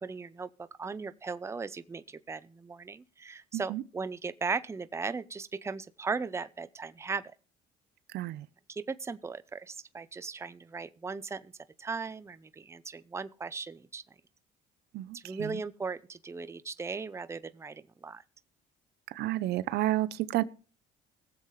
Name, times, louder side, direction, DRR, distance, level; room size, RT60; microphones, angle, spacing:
voice 1, 0.0-7.3 8.7-11.5 11.8-14.0 15.1-18.2, right 4 dB, 15° right, 0.6 m, -37 dB
voice 2, 8.1-8.4 14.9-15.6 19.1-20.4, right 16 dB, 75° right, 0.7 m, -31 dB
21.0 x 7.4 x 3.2 m
cardioid pair, 110°, 17 cm